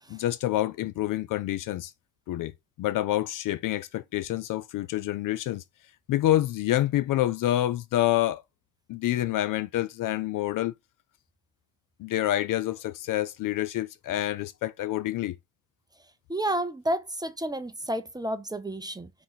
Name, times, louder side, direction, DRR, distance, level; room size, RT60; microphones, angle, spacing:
voice 1, 0.1-1.9 2.3-2.5 2.8-5.6 6.1-8.4 8.9-10.7 12.0-15.4, left 14 dB, 55° left, 0.4 m, -27 dB
voice 2, 16.3-19.1, right 1 dB, 10° right, 0.6 m, -31 dB
3.8 x 3.1 x 3.9 m
supercardioid pair, 65°, 40 cm